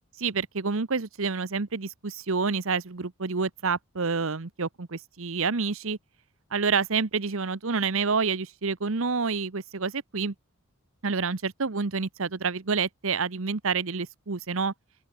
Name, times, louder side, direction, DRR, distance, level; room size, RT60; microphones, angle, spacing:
voice 1, 0.2-6.0 6.5-10.3 11.0-14.7, right 5 dB, 60° right, 1.0 m, -28 dB
open air
head